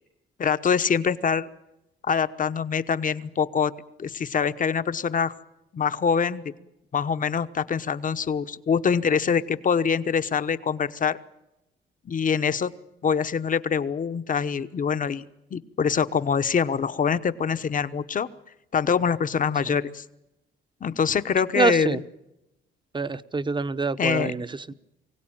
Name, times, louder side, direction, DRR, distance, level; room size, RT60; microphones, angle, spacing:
voice 1, 0.4-1.5 2.0-3.7 4.0-5.3 5.7-6.4 6.9-11.2 12.1-12.7 13.0-15.2 15.5-18.3 18.7-20.0 20.8-22.0 24.0-24.3, left 6 dB, 40° left, 12 dB, 1.1 m, -24 dB
voice 2, 21.6-22.0 22.9-24.7, right 4 dB, 25° right, 13 dB, 1.0 m, -25 dB
24.0 x 17.0 x 8.9 m, 0.91 s
cardioid pair, 90°, 20 cm